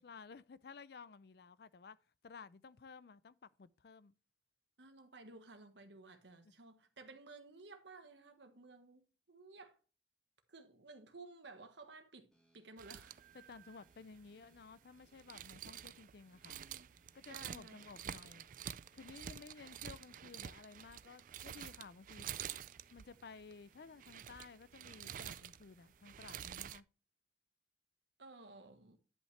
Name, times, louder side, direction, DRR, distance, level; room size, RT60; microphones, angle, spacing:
voice 1, 0.0-2.0 2.2-4.1 6.4-6.5 13.3-16.6 17.1-18.4 18.9-22.3 22.9-26.9, left 5 dB, 55° left, 0.4 m, -55 dB
voice 2, 4.8-9.8 10.5-13.3 16.4-16.9 17.3-18.2 28.2-29.0, right 3 dB, 75° right, 1.4 m, -56 dB
sound 1, 12.3-26.4, equal, 5° left, 1.7 m, -76 dB
sound 2, 12.8-26.8, right 9 dB, 45° right, 0.3 m, -49 dB
10.5 x 5.6 x 3.2 m
head